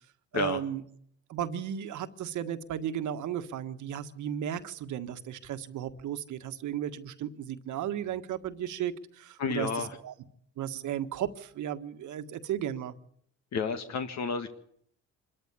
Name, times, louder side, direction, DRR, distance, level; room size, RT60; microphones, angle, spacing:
voice 1, 0.3-0.8 1.3-9.7 10.0-10.1 10.6-12.9, right 10 dB, 80° right, 9 dB, 1.6 m, -34 dB
voice 2, 9.4-10.0 13.5-14.5, left 5 dB, 65° left, 7 dB, 1.9 m, -31 dB
26.0 x 13.5 x 8.3 m, 0.66 s
cardioid pair, 90°, 30 cm